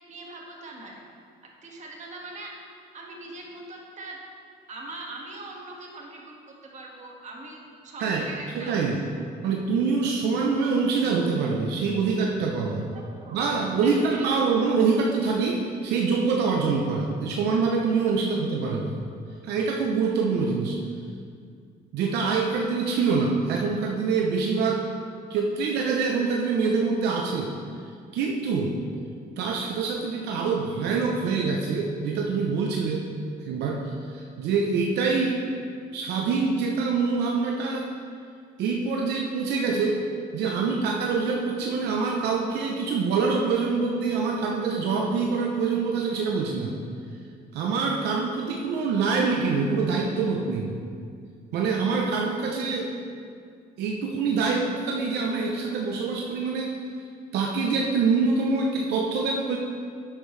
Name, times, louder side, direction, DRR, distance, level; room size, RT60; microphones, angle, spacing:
voice 1, 0.1-1.0 1.6-2.5 2.9-4.2 4.7-9.0 12.9-13.4 13.8-14.3 18.1-18.2, right 2 dB, 45° right, -1 dB, 1.9 m, -41 dB
voice 2, 8.5-9.0 9.4-12.8 13.3-18.9 19.4-20.8 21.9-24.8 25.3-27.5 28.1-28.7 29.4-33.1 33.5-35.4 35.9-37.9 38.6-40.0 40.3-46.8 47.5-50.7 51.5-53.0 53.8-56.8 57.3-59.6, right 4 dB, 80° right, 0 dB, 0.8 m, -25 dB
10.5 x 8.6 x 3.3 m, 2.2 s
cardioid pair, 110°, 17 cm